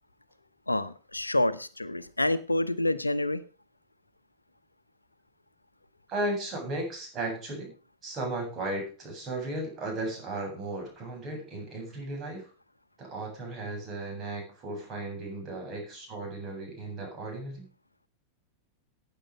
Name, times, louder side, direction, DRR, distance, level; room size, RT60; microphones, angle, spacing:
voice 1, 0.7-3.4, left 1 dB, 85° left, 14 dB, 0.8 m, -28 dB
voice 2, 6.1-7.7 8.0-12.5 13.0-17.7, right 2 dB, 30° right, 1 dB, 7.8 m, -35 dB
15.0 x 9.0 x 5.2 m, 0.36 s
figure-of-eight pair, 90°, 0 cm